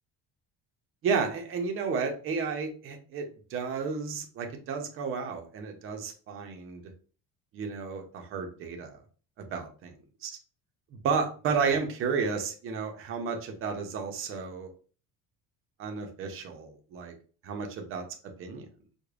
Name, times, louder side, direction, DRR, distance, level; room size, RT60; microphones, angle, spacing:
voice 1, 1.0-3.3 3.5-6.8 7.5-9.0 9.4-9.9 10.2-10.3 10.9-14.7 15.8-17.1 17.4-18.0 18.4-18.7, right 5 dB, 40° right, 4 dB, 0.6 m, -32 dB
4.9 x 2.1 x 2.4 m, 0.39 s
cardioid pair, 180°, 35 cm